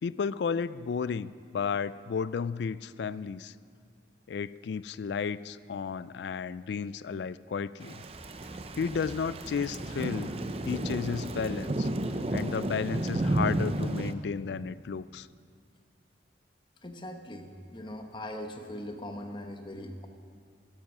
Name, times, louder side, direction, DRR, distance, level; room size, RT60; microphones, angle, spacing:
voice 1, 0.0-3.5 4.3-8.0 8.8-10.3 10.7-11.9 12.3-15.3, left 6 dB, 70° left, 17 dB, 0.3 m, -33 dB
Thunder / Rain, 7.8-14.1, right 1 dB, 35° right, 0.6 m, -32 dB
sound 1, 8.0-15.1, equal, 15° right, 2.1 m, -50 dB
voice 2, 16.8-20.1, left 1 dB, 25° left, 5 dB, 1.0 m, -40 dB
12.5 x 11.5 x 6.1 m, 2.3 s
head